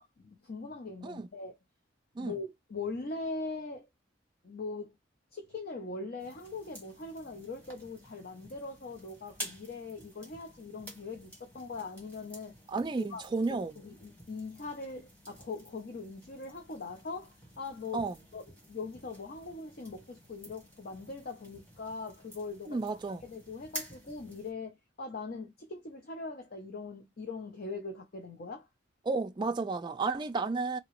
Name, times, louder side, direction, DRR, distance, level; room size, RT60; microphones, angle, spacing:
voice 1, 0.0-1.6 2.2-3.9 4.4-4.9 5.3-12.5 13.0-18.0 18.3-22.8 23.2-28.7, left 3 dB, 50° left, 0.6 m, -41 dB
sound 1, 6.2-24.5, equal, 10° left, 1.2 m, -50 dB
voice 2, 12.7-13.8 17.9-18.2 22.7-23.2 29.1-30.8, right 3 dB, 25° right, 0.3 m, -32 dB
2.9 x 2.8 x 3.0 m
head